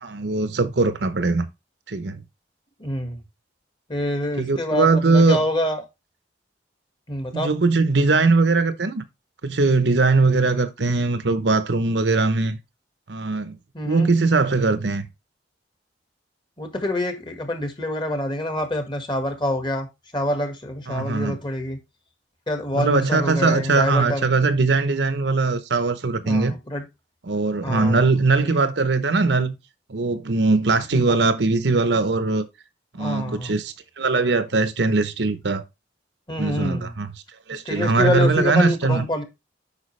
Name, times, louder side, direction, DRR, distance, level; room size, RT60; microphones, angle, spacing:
voice 1, 0.0-1.5 1.9-2.2 4.4-5.4 7.3-9.0 9.4-12.6 13.1-13.6 13.8-15.1 20.9-21.4 22.7-26.5 27.3-29.5 29.9-32.5 32.9-35.6 36.4-37.1 37.5-39.1, right 3 dB, 70° right, 0.8 m, -20 dB
voice 2, 2.8-3.2 3.9-5.8 7.1-7.5 13.7-14.1 16.6-19.9 20.1-21.8 22.5-24.3 26.2-26.8 27.6-28.5 30.9-31.0 33.0-33.6 36.3-36.9 37.6-39.2, left 1 dB, 25° left, 1.6 m, -26 dB
8.3 x 5.7 x 3.2 m
head